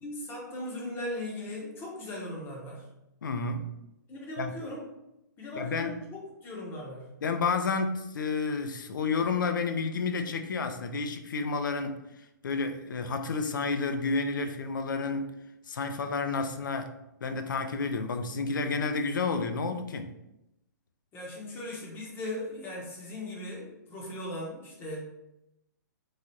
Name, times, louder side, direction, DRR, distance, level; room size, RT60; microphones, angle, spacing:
voice 1, 0.0-2.9 4.1-4.9 5.4-7.1 21.1-25.0, left 1 dB, 20° left, -2 dB, 0.7 m, -38 dB
voice 2, 3.2-3.7 4.4-4.6 5.6-6.0 7.2-12.0 12.4-15.3 15.7-16.9 17.2-20.1, left 4 dB, 80° left, 7 dB, 0.4 m, -30 dB
3.2 x 2.3 x 2.6 m, 0.88 s
hypercardioid pair, 135°, 10 cm